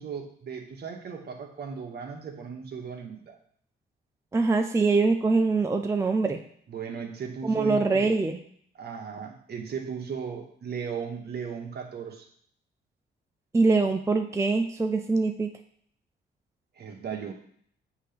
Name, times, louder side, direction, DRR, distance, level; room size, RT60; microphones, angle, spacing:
voice 1, 0.0-3.3 6.7-8.1 8.8-12.3 16.8-17.3, right 6 dB, 55° right, 3 dB, 1.2 m, -36 dB
voice 2, 4.3-6.4 7.4-8.4 13.5-15.5, right 3 dB, 15° right, 5 dB, 0.4 m, -23 dB
7.3 x 2.9 x 5.1 m, 0.63 s
cardioid pair, 90°, 20 cm